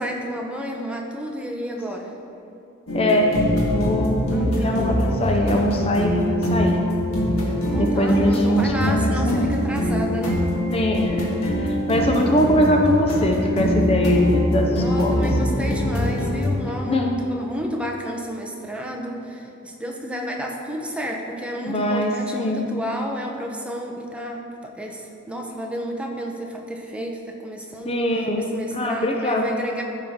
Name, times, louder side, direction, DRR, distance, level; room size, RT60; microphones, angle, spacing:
voice 1, 0.0-2.1 4.3-5.0 7.7-10.6 12.1-12.5 14.7-28.0 28.4-29.8, equal, 5° right, 0 dB, 0.8 m, -31 dB
sound 1, 2.9-16.5, equal, 85° left, 1.7 m, -23 dB
voice 2, 2.9-3.3 3.6-6.8 7.7-9.5 10.7-15.3 16.9-17.1 21.6-22.7 27.8-29.5, equal, 25° left, 2 dB, 0.5 m, -22 dB
14.0 x 5.6 x 3.6 m, 2.8 s
head